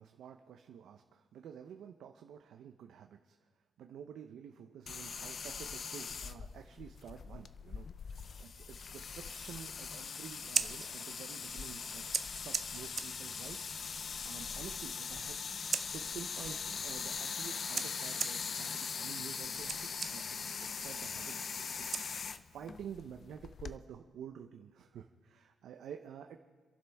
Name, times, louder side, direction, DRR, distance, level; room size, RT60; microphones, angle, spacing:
voice 1, 0.0-3.4 3.8-13.6 14.0-15.4 15.9-21.9 22.1-26.4, right 8 dB, 65° right, 5 dB, 0.8 m, -50 dB
sound 1, 4.9-23.8, left 5 dB, 35° left, 0.4 m, -41 dB
Scissors, 10.3-22.7, right 5 dB, 30° right, 0.6 m, -43 dB
29.5 x 11.5 x 3.5 m, 1.4 s
cardioid pair, 160°, 0 cm